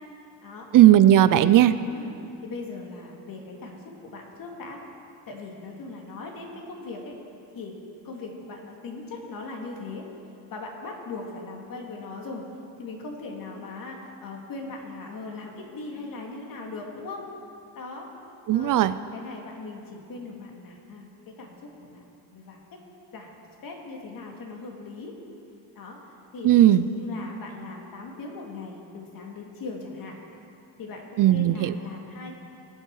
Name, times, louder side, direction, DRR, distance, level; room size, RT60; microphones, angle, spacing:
voice 1, 0.7-1.7 18.5-18.9 26.4-26.8 31.2-31.7, right 12 dB, 55° right, 14 dB, 0.5 m, -16 dB
voice 2, 1.9-3.8 4.0-4.8 5.3-7.1 7.5-7.8 8.0-10.0 10.5-12.4 12.8-17.3 17.7-18.1 18.5-18.8 19.1-22.0 22.3-22.8 23.1-25.1 25.7-26.0 26.3-30.1 30.8-32.4, left 3 dB, 60° left, 0 dB, 2.3 m, -39 dB
21.5 x 7.5 x 4.7 m, 2.6 s
cardioid pair, 120°, 39 cm